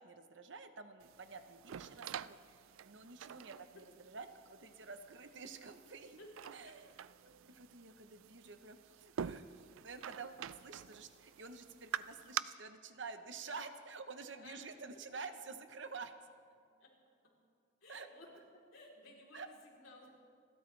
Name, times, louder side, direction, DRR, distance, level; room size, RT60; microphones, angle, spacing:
voice 1, 0.0-6.2 6.5-6.9 7.5-16.1 17.9-18.1 19.3-19.5, right 4 dB, 60° right, 8 dB, 0.9 m, -49 dB
sound 1, 1.0-12.4, right 9 dB, 80° right, 0.4 m, -47 dB
voice 2, 6.2-6.7 7.2-7.3 14.4-14.7 16.8-16.9 17.8-18.4 18.7-20.2, left 1 dB, 80° left, -3 dB, 3.5 m, -57 dB
28.5 x 12.5 x 3.3 m, 2.2 s
head